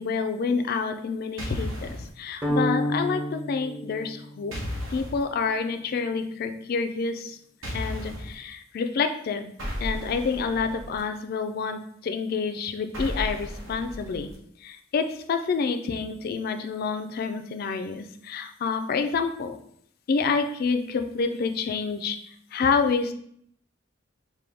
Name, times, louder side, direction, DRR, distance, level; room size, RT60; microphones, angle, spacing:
voice 1, 0.0-4.6 4.9-7.4 7.7-9.5 9.8-14.3 14.6-19.6 20.1-22.2 22.5-23.1, left 5 dB, 50° left, 8 dB, 0.3 m, -28 dB
sound 1, 1.4-2.1 4.5-5.2 7.6-8.3 9.6-11.0 12.9-14.4, equal, 90° right, 1.1 m, -34 dB
sound 2, 2.4-4.7, equal, 10° right, 0.6 m, -29 dB
4.8 x 2.2 x 3.4 m, 0.67 s
head